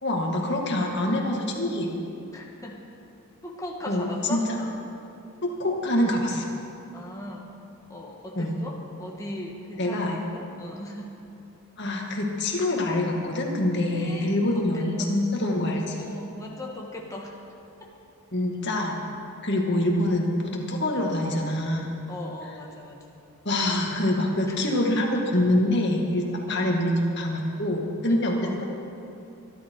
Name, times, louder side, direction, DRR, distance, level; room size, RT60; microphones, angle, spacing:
voice 1, 0.0-1.9 3.9-4.6 5.4-6.5 8.3-8.5 9.8-10.2 11.8-16.0 18.3-19.0 19.4-21.9 23.4-26.9 27.2-28.6, left 1 dB, 50° left, 0 dB, 2.2 m, -25 dB
voice 2, 2.3-2.8 3.4-4.5 6.9-7.5 7.9-11.1 13.9-15.3 15.9-17.4 17.8-17.9 22.1-23.0 24.6-24.7 26.5-26.8 28.4-28.6, left 1 dB, 15° left, -2 dB, 1.5 m, -38 dB
24.0 x 11.5 x 4.8 m, 2.8 s
head